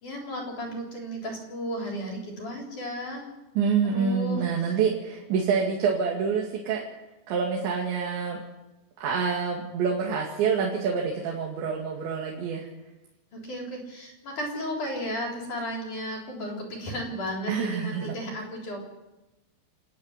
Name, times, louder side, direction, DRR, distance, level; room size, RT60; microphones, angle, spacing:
voice 1, 0.0-3.3 3.8-4.8 13.3-18.8, equal, 45° left, 0 dB, 5.1 m, -34 dB
voice 2, 3.6-6.8 7.3-8.4 9.0-12.7 17.5-18.2, right 6 dB, 85° right, -2 dB, 4.5 m, -27 dB
29.5 x 10.0 x 9.7 m, 1.0 s
omnidirectional pair, 5.1 m